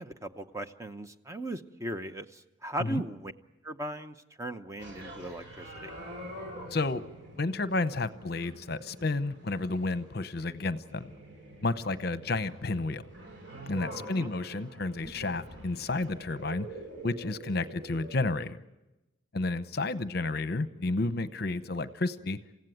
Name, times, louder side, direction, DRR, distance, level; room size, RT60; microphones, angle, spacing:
voice 1, 0.0-3.3 3.6-5.9 14.0-14.3, right 1 dB, 15° right, 8 dB, 0.8 m, -38 dB
sound 1, 4.8-18.1, right 1 dB, 65° right, 7.8 m, -46 dB
voice 2, 6.7-7.0 7.4-11.1 11.6-13.1 13.7-16.7 17.0-18.6 19.3-22.4, left 2 dB, 50° left, 12 dB, 0.9 m, -31 dB
28.5 x 16.5 x 9.3 m, 1.0 s
head